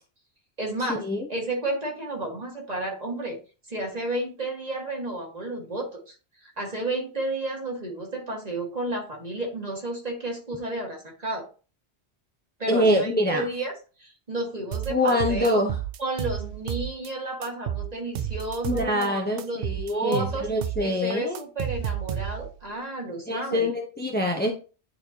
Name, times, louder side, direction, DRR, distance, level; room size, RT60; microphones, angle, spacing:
voice 1, 0.6-1.0 1.3-3.4 3.7-6.1 6.4-11.5 12.6-13.7 14.0-15.6 16.0-20.5 20.8-23.7, right 2 dB, 40° right, 0 dB, 1.9 m, -32 dB
voice 2, 12.7-13.4 14.9-15.8 18.7-21.4 23.3-24.5, left 1 dB, 10° left, 2 dB, 0.8 m, -25 dB
sound 1, 14.7-17.1 17.4-19.1 19.4-22.6, right 10 dB, 65° right, 0.7 m, -31 dB
9.6 x 4.3 x 2.9 m, 0.35 s
omnidirectional pair, 1.1 m